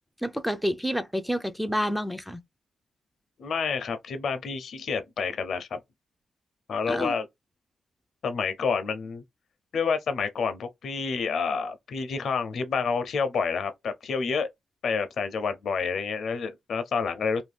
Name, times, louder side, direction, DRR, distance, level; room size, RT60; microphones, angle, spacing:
voice 1, 0.2-2.4 6.9-7.1, equal, ahead, 0.4 m, -28 dB
voice 2, 3.4-5.8 6.7-7.3 8.2-9.2 9.7-14.5 14.8-17.4, left 5 dB, 70° left, 0.6 m, -29 dB
2.6 x 2.2 x 3.3 m
wide cardioid pair, 110°, 0 cm